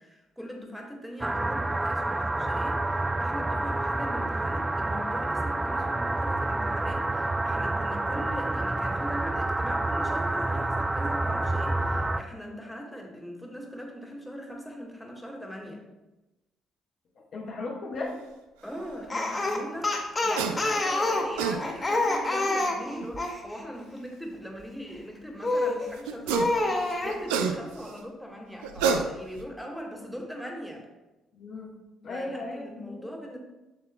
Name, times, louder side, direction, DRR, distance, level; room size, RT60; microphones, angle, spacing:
voice 1, 0.0-15.8 18.6-30.9 32.1-33.4, equal, ahead, 0 dB, 1.7 m, -40 dB
sound 1, 1.2-12.2, right 2 dB, 20° right, 0.4 m, -28 dB
voice 2, 17.3-18.2 31.3-31.7 32.0-33.2, left 2 dB, 60° left, -2 dB, 1.5 m, -36 dB
Speech, 19.1-23.4 25.4-25.9 26.3-27.2, left 2 dB, 30° left, 1.9 m, -27 dB
sound 2, 20.4-20.6 21.1-21.6 23.0-23.1 26.1-26.6 26.9-27.9 28.6-29.4, right 6 dB, 85° right, 0.5 m, -27 dB
8.4 x 6.7 x 2.2 m, 1.1 s
hypercardioid pair, 55°, 0 cm